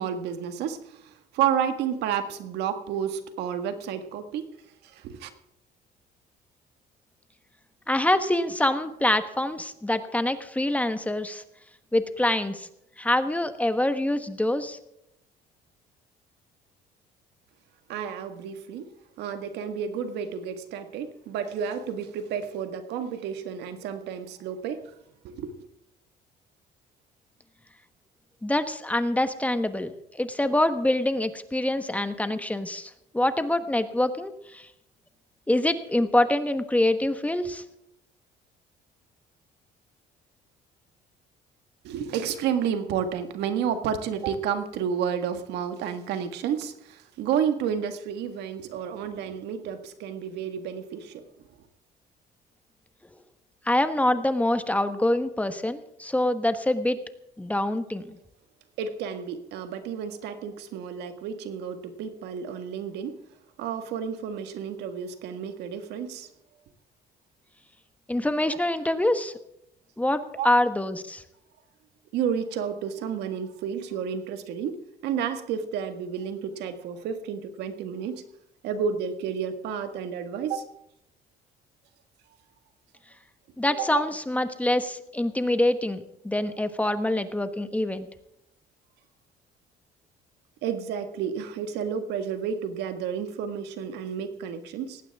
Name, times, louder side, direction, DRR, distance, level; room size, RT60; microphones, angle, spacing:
voice 1, 0.0-4.5 4.8-5.3 17.9-18.9 19.2-24.9 25.2-25.6 41.8-51.2 58.8-63.2 63.6-66.3 70.4-70.5 72.1-78.2 78.6-80.8 83.9-84.0 90.6-95.0, right 8 dB, 85° right, 8 dB, 1.8 m, -31 dB
voice 2, 7.9-11.4 11.9-12.7 13.0-14.8 28.4-34.7 35.5-37.6 53.6-57.0 57.4-58.2 68.1-69.3 70.0-71.2 83.6-88.1, left 1 dB, 10° left, 9 dB, 1.2 m, -25 dB
19.0 x 16.0 x 3.6 m, 0.79 s
cardioid pair, 110°, 17 cm